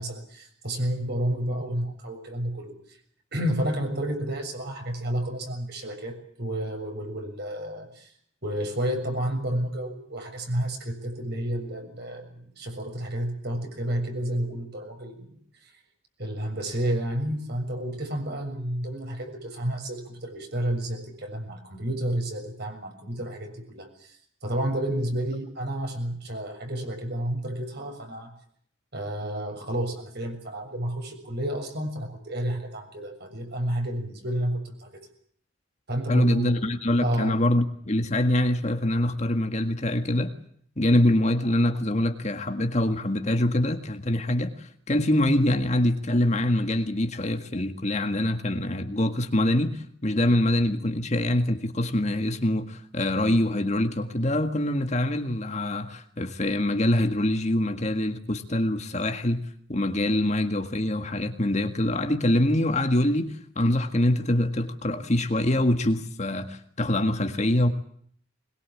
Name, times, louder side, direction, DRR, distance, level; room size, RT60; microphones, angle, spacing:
voice 1, 0.0-2.7 3.3-8.1 8.4-15.3 16.2-24.2 24.4-28.3 28.9-34.9 35.9-36.6 37.0-37.4, right 1 dB, 50° right, 6.9 m, -31 dB
voice 2, 36.1-40.3 40.8-59.4 59.7-67.7, left 1 dB, 35° left, 1.8 m, -24 dB
22.5 x 21.5 x 8.6 m
head